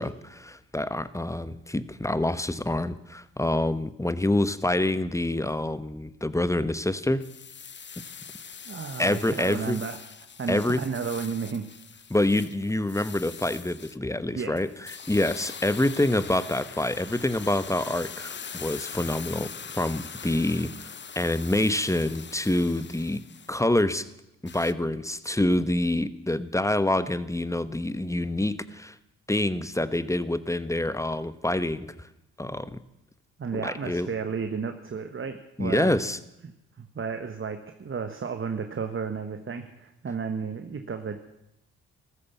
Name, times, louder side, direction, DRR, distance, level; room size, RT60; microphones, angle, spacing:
voice 1, 0.0-7.2 9.0-9.8 10.5-10.8 12.1-23.2 23.5-24.1 24.4-29.0 29.3-32.1 32.4-32.8 33.5-34.1 35.6-36.2, left 1 dB, 10° left, 15 dB, 1.0 m, -26 dB
sound 1, 7.2-14.0 14.6-23.6 24.5-24.7, left 6 dB, 35° left, 0.8 m, -42 dB
voice 2, 8.7-10.0 10.4-11.6 14.3-14.7 33.4-35.9 36.4-36.5 36.8-41.2, right 5 dB, 35° right, 7 dB, 1.3 m, -33 dB
14.0 x 13.0 x 7.1 m, 0.86 s
hypercardioid pair, 50°, 34 cm